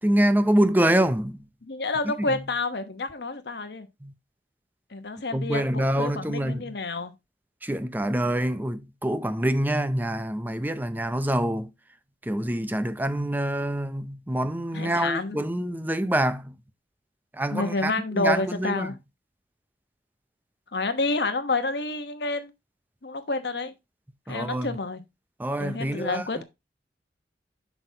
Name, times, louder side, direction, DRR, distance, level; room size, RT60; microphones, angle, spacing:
voice 1, 0.0-1.4 2.2-2.4 4.0-4.1 5.3-6.7 7.6-11.7 12.2-16.6 17.3-19.0 24.3-24.8 25.4-26.4, right 1 dB, 10° right, 0.5 m, -26 dB
voice 2, 1.7-3.9 4.9-7.1 14.7-15.4 17.5-18.9 20.7-22.5 23.0-23.7 24.3-25.0 25.6-26.4, left 3 dB, 70° left, 1.0 m, -29 dB
7.7 x 6.1 x 2.8 m
head